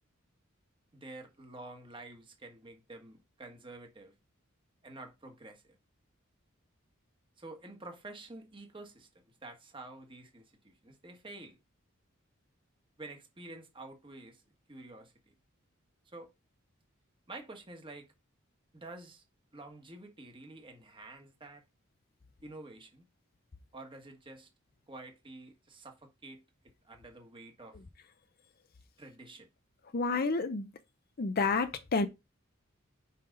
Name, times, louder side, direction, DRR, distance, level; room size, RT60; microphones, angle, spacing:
voice 1, 0.9-4.1 4.8-5.8 7.4-11.6 13.0-14.4 14.7-15.3 16.1-16.3 17.3-18.1 18.7-19.2 19.5-21.6 22.4-23.0 23.7-24.5 24.9-26.4 26.8-27.8 29.0-29.5, right 2 dB, 25° right, 1.4 m, -49 dB
voice 2, 29.9-30.7 31.2-32.1, left 4 dB, 50° left, 0.6 m, -30 dB
5.7 x 5.3 x 3.8 m
head